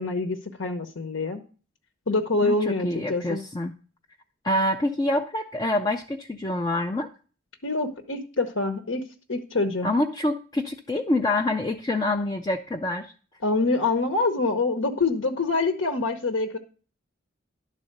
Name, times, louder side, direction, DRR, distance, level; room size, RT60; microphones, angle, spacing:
voice 1, 0.0-1.4 2.1-3.4 7.6-9.0 9.3-9.9 13.4-16.6, left 3 dB, 75° left, 5 dB, 0.9 m, -25 dB
voice 2, 2.4-3.7 4.4-7.1 9.8-13.1, left 1 dB, 20° left, 3 dB, 0.4 m, -26 dB
11.0 x 4.1 x 6.6 m, 0.39 s
head